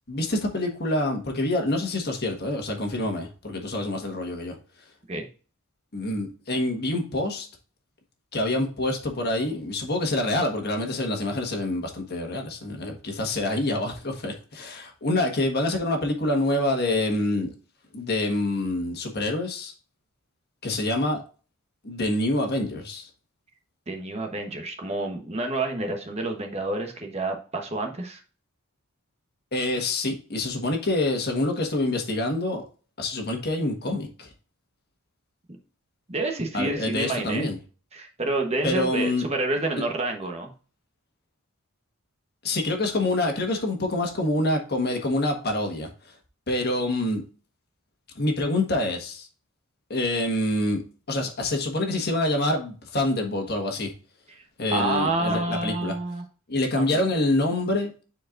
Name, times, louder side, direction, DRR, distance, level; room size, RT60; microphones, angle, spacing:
voice 1, 0.1-4.6 5.9-7.5 8.3-17.5 17.9-19.7 20.6-21.2 21.8-23.1 29.5-32.6 33.0-34.3 36.5-37.6 38.6-39.3 39.7-39.8 42.4-46.1 46.5-47.2 48.1-49.3 49.9-50.8 51.1-53.9 54.6-55.9 56.5-57.9, left 1 dB, 45° left, 3 dB, 1.4 m, -26 dB
voice 2, 23.9-28.2 36.1-37.5 37.9-40.5 54.7-56.2 56.8-57.0, right 2 dB, 30° right, 3 dB, 1.0 m, -28 dB
10.5 x 4.5 x 2.5 m, 0.37 s
head